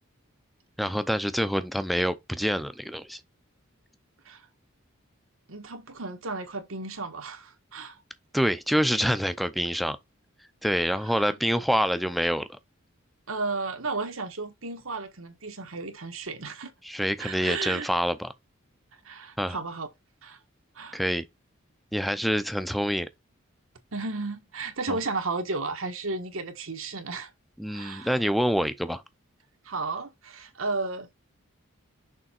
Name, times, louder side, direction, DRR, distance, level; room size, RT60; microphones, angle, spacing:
voice 1, 0.8-3.2 8.3-10.0 10.6-12.5 16.8-18.3 19.4-19.6 20.9-21.2 21.9-23.1 24.9-25.0 27.6-29.0, equal, ahead, 0.6 m, -26 dB
voice 2, 5.5-8.0 11.1-11.4 13.3-16.7 17.2-17.9 19.0-19.9 20.2-20.4 20.7-21.0 23.9-27.3 27.7-28.1 29.6-31.1, right 3 dB, 75° right, 1.4 m, -33 dB
6.5 x 3.5 x 4.4 m
head